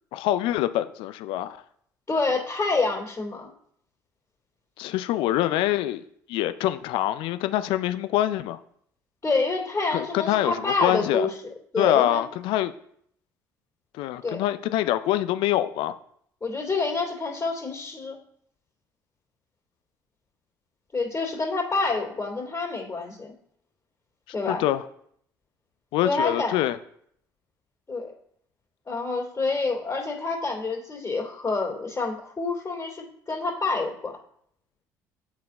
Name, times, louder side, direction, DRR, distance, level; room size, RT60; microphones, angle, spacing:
voice 1, 0.1-1.6 4.8-6.0 6.3-8.6 9.9-11.3 11.8-12.7 13.9-16.0 24.5-24.8 25.9-26.8, left 13 dB, 70° left, 12 dB, 0.4 m, -25 dB
voice 2, 2.1-3.5 9.2-11.3 11.7-12.2 14.2-14.4 16.4-18.2 20.9-23.3 24.3-24.6 26.0-26.5 27.9-28.1 28.9-34.1, left 3 dB, 30° left, -6 dB, 2.7 m, -27 dB
8.6 x 4.1 x 4.2 m, 0.67 s
hypercardioid pair, 55°, 9 cm